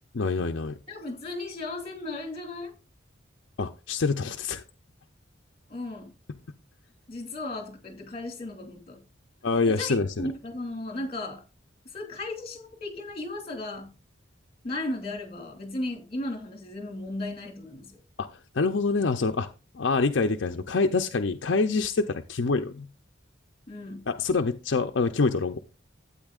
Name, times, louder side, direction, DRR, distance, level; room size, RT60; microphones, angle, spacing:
voice 1, 0.1-0.8 3.6-4.6 9.4-10.3 18.2-19.5 19.7-22.9 24.1-25.6, left 4 dB, 65° left, 0.5 m, -26 dB
voice 2, 0.9-2.7 5.7-6.1 7.1-9.0 9.6-11.4 11.9-13.9 14.6-18.0 23.7-24.1, left 2 dB, 30° left, 2.8 m, -35 dB
12.5 x 8.8 x 2.4 m
head